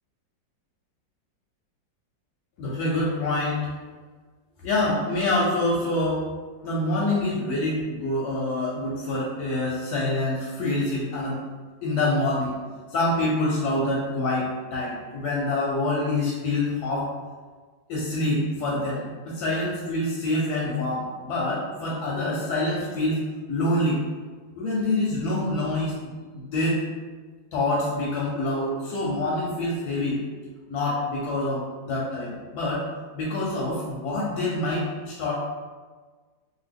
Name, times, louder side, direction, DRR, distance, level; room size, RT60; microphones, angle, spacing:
voice 1, 2.6-3.7 4.6-6.3 6.6-11.4 11.8-12.5 12.9-17.1 17.9-23.2 23.5-24.0 24.5-25.9 26.3-26.8 27.5-30.2 30.7-32.8 33.1-35.3, left 2 dB, 70° left, -4 dB, 1.0 m, -26 dB
2.7 x 2.5 x 3.3 m, 1.4 s
omnidirectional pair, 2.0 m